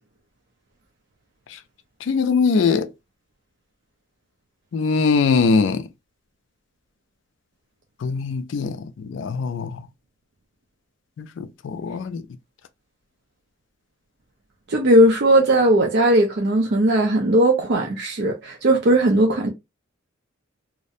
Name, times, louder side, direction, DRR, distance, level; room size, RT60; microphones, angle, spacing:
voice 1, 2.1-2.9 4.7-5.8 8.0-8.7 9.1-9.8 11.2-12.2, left 4 dB, 65° left, 0.3 m, -21 dB
voice 2, 14.7-19.5, right 1 dB, 55° right, 0.4 m, -17 dB
2.5 x 2.0 x 2.6 m
head